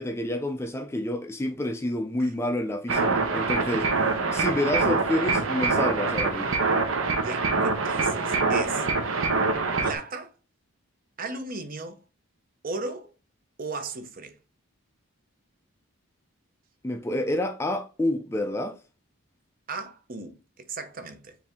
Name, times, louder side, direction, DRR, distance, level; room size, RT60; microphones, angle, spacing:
voice 1, 0.0-6.6 16.8-18.8, left 1 dB, 10° left, 0.3 m, -29 dB
sound 1, 2.9-10.0, right 4 dB, 70° right, 0.8 m, -25 dB
voice 2, 7.1-8.9 9.8-10.3 11.2-12.0 12.6-13.1 13.6-14.4 19.7-21.4, right 3 dB, 40° right, 0.6 m, -36 dB
4.9 x 2.7 x 3.4 m
head